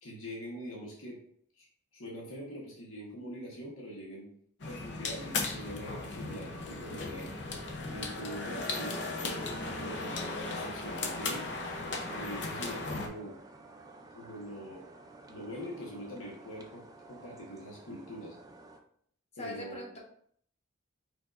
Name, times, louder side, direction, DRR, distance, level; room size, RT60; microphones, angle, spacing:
voice 1, 0.0-1.2 1.6-1.7 1.9-4.3 4.6-7.3 7.8-11.5 12.1-13.4 14.1-14.9 15.3-18.3 19.4-19.8, equal, 90° left, -3 dB, 1.1 m, -43 dB
sound 1, 4.6-13.1, left 3 dB, 60° left, 0.6 m, -36 dB
sound 2, 11.8-18.8, right 2 dB, 20° right, 0.3 m, -53 dB
voice 2, 19.3-20.0, left 1 dB, 30° left, -1 dB, 1.0 m, -41 dB
4.6 x 4.5 x 2.4 m, 0.64 s
head